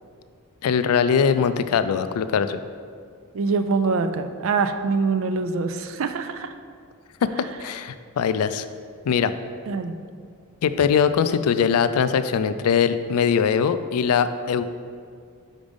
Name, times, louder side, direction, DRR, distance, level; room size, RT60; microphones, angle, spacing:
voice 1, 0.6-2.6 7.2-8.7 9.1-9.3 10.6-14.6, left 7 dB, 90° left, 12 dB, 0.4 m, -21 dB
voice 2, 3.3-6.5 9.7-10.0, right 4 dB, 65° right, 9 dB, 0.4 m, -24 dB
5.2 x 5.1 x 5.2 m, 2.1 s
head